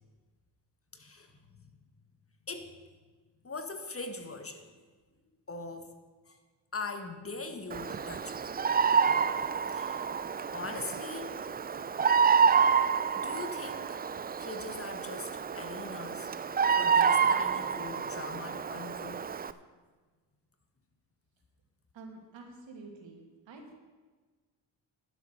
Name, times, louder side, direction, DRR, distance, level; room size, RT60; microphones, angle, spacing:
voice 1, 0.9-1.7 2.5-2.7 3.4-4.7 5.5-5.9 6.3-6.4 6.7-8.5 9.5-10.1 10.5-11.4 13.1-14.1 14.4-16.3 16.8-19.3, left 3 dB, 30° left, 7 dB, 1.5 m, -41 dB
Bird vocalization bird call bird song, 7.7-19.5, right 6 dB, 20° right, 0.4 m, -28 dB
voice 2, 21.9-23.2 23.5-23.7, right 3 dB, 65° right, 2 dB, 2.4 m, -48 dB
11.0 x 8.0 x 6.4 m, 1.4 s
supercardioid pair, 55°, 49 cm